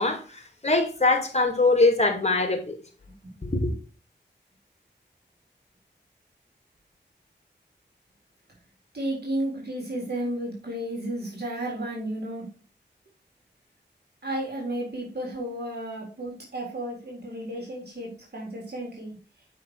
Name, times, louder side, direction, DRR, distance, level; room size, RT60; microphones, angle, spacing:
voice 1, 0.0-2.8 3.4-3.7, left 2 dB, 35° left, 2.6 m, -23 dB
voice 2, 8.9-12.5 14.2-19.2, right 1 dB, 60° right, 3.9 m, -33 dB
8.3 x 5.7 x 4.8 m
cardioid pair, 50°, 19 cm